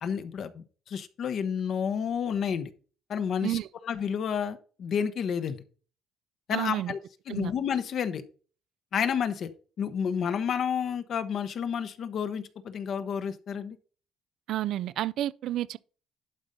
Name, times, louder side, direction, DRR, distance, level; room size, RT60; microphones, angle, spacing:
voice 1, 0.0-2.7 3.1-5.6 6.5-7.0 7.3-8.2 8.9-9.5 9.8-13.8, left 7 dB, 55° left, 1.0 m, -30 dB
voice 2, 6.5-6.9 7.3-7.5 14.5-15.8, right 13 dB, 70° right, 0.4 m, -30 dB
11.5 x 4.0 x 5.2 m
cardioid pair, 105°, 0 cm